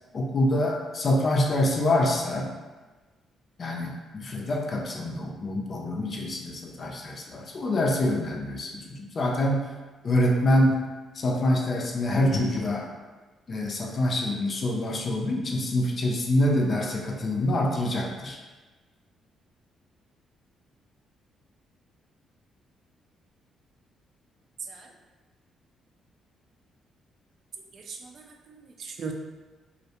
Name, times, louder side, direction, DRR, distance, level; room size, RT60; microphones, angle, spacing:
voice 1, 0.1-2.5 3.6-9.7 10.0-10.8 11.2-12.9 13.5-18.4, left 1 dB, 45° left, 0 dB, 0.4 m, -25 dB
voice 2, 27.7-29.1, right 5 dB, 60° right, 3 dB, 0.3 m, -39 dB
2.4 x 2.1 x 2.8 m, 1.3 s
cardioid pair, 90°, 0 cm